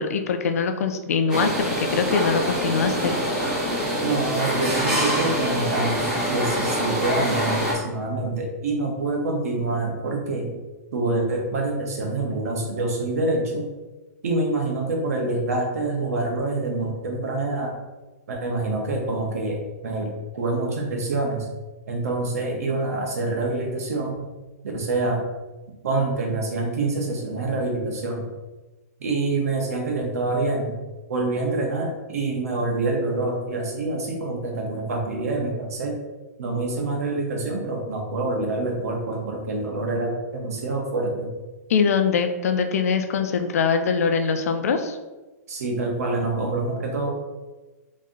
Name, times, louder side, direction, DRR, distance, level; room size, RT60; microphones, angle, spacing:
voice 1, 0.0-3.2 41.7-45.0, left 5 dB, 60° left, 7 dB, 0.5 m, -23 dB
sound 1, 1.3-7.7, equal, 10° right, 0.7 m, -25 dB
voice 2, 4.0-10.5 10.9-13.7 14.2-17.8 18.3-21.5 21.9-24.3 24.7-25.2 25.8-28.3 29.0-30.7 31.1-36.0 36.4-41.3 45.5-47.1, right 2 dB, 60° right, 1 dB, 0.9 m, -26 dB
3.1 x 2.7 x 3.7 m, 1.2 s
hypercardioid pair, 170°, 9 cm